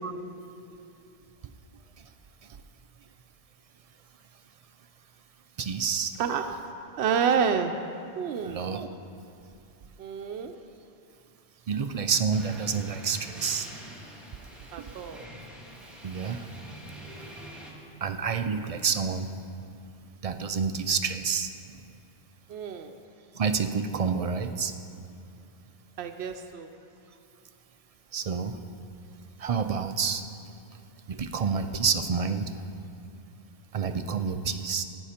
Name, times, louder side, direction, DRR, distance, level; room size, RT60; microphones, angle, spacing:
voice 1, 5.6-6.1 8.4-9.0 11.7-13.7 14.8-14.9 16.0-16.5 17.0-17.3 18.0-19.3 20.2-21.5 23.4-24.7 28.1-28.6 29.4-30.2 31.1-32.6 33.7-34.8, right 6 dB, 50° right, 8 dB, 0.4 m, -28 dB
voice 2, 6.2-6.6 7.0-7.7 8.2-8.6 10.0-10.5 14.7-15.2 22.5-22.9 26.0-26.7, right 7 dB, 75° right, 5 dB, 0.8 m, -28 dB
sound 1, 12.3-17.7, equal, ahead, 1.6 m, -45 dB
15.0 x 9.7 x 4.3 m, 2.6 s
omnidirectional pair, 1.1 m